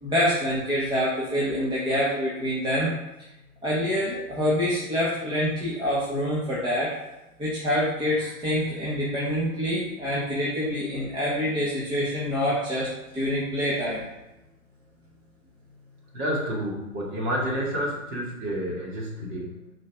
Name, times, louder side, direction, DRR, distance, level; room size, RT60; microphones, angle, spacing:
voice 1, 0.0-2.9 3.6-6.9 7.4-14.0, equal, 10° right, -7 dB, 1.6 m, -26 dB
voice 2, 16.1-19.7, equal, 25° right, -3 dB, 2.5 m, -29 dB
6.3 x 4.4 x 5.1 m, 0.94 s
hypercardioid pair, 125°, 44 cm